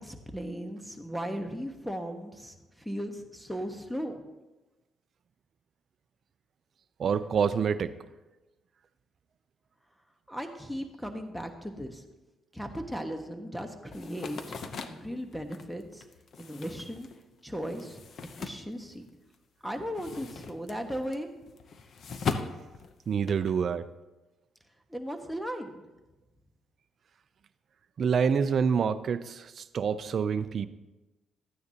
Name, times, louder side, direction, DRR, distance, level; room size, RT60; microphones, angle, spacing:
voice 1, 0.0-4.2 10.3-12.0 12.5-16.0 16.4-17.1 17.4-18.0 18.4-19.0 19.6-21.3 24.9-25.8, equal, ahead, 5 dB, 1.2 m, -37 dB
voice 2, 7.0-7.9 23.1-23.8 28.0-30.7, right 6 dB, 55° right, 13 dB, 0.5 m, -27 dB
sound 1, 13.9-19.3 19.6-23.5, left 5 dB, 55° left, 0.7 m, -39 dB
13.5 x 9.4 x 2.9 m, 1.1 s
cardioid pair, 90°, 0 cm